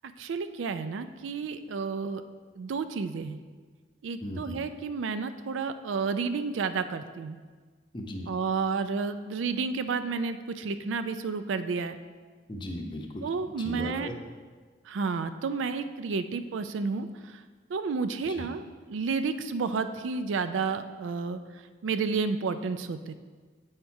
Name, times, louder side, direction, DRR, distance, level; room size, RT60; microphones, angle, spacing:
voice 1, 0.2-2.2 2.6-3.4 4.0-7.4 8.3-12.0 13.2-14.1 14.9-17.4 17.7-18.6 18.9-23.1, right 4 dB, 85° right, 10 dB, 0.4 m, -31 dB
voice 2, 4.2-4.6 7.9-8.3 12.5-13.3 13.6-14.1 18.3-18.4, left 1 dB, 25° left, 3 dB, 0.7 m, -36 dB
7.8 x 4.3 x 4.7 m, 1.5 s
head